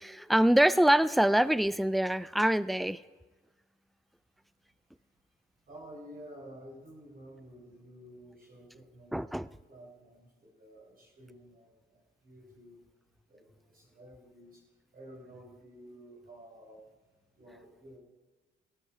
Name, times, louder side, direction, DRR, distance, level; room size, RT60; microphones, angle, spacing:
voice 1, 0.0-3.0 9.1-9.5, right 1 dB, ahead, 17 dB, 0.4 m, -25 dB
voice 2, 5.7-12.8 13.3-14.6 14.9-16.9 17.3-18.0, right 1 dB, 45° right, -2 dB, 4.8 m, -52 dB
16.5 x 13.0 x 4.9 m, 1.3 s
cardioid pair, 90°, 20 cm